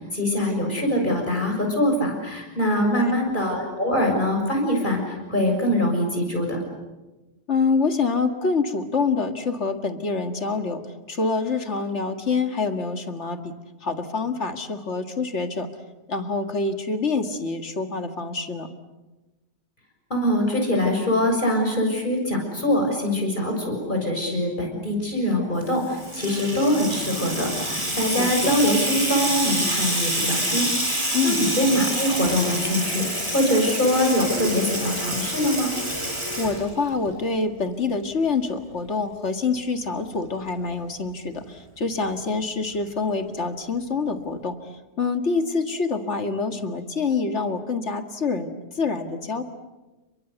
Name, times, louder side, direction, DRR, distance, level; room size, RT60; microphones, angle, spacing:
voice 1, 0.0-6.6 20.1-31.0 31.2-33.1 33.3-35.7, left 1 dB, 45° left, 2 dB, 6.9 m, -23 dB
voice 2, 2.8-3.1 7.5-10.8 11.1-13.5 13.8-15.7 16.1-18.7 28.2-28.5 31.1-31.4 36.4-44.6 45.0-48.5 48.7-49.4, left 4 dB, 75° left, 7 dB, 2.3 m, -26 dB
Water tap faucet / Sink (filling or washing), 25.7-37.1, equal, 25° right, 7.9 m, -27 dB
30.0 x 23.0 x 8.2 m, 1.1 s
omnidirectional pair, 1.2 m